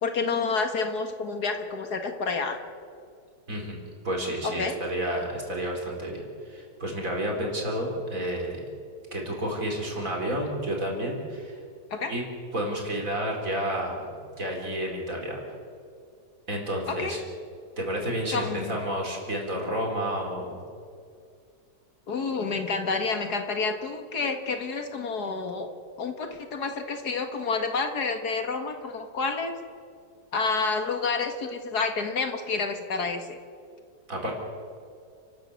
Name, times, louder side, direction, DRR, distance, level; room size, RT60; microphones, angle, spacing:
voice 1, 0.0-2.6 4.4-4.8 11.9-12.1 16.9-17.2 18.3-18.8 22.1-25.7 26.0-29.5 30.3-33.4, left 4 dB, 70° left, 6 dB, 2.2 m, -29 dB
voice 2, 4.0-8.6 9.1-11.6 12.1-12.2 12.5-14.1 14.4-15.4 16.5-17.2 17.8-20.6 34.1-34.3, right 1 dB, 50° right, 0 dB, 4.8 m, -30 dB
29.5 x 13.0 x 8.2 m, 2.3 s
omnidirectional pair, 1.8 m